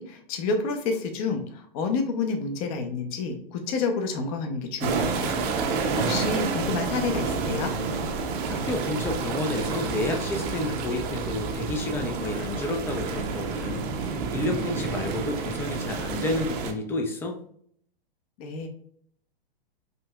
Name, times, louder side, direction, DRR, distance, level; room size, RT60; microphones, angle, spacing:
voice 1, 0.0-5.4 5.7-7.7 18.4-18.7, left 4 dB, 40° left, 5 dB, 0.7 m, -29 dB
sound 1, 4.8-16.7, right 4 dB, 35° right, 0.6 m, -29 dB
voice 2, 8.5-13.9 14.3-17.4, left 2 dB, 10° left, 4 dB, 0.4 m, -30 dB
5.2 x 2.7 x 2.3 m, 0.63 s
hypercardioid pair, 110°, 30 cm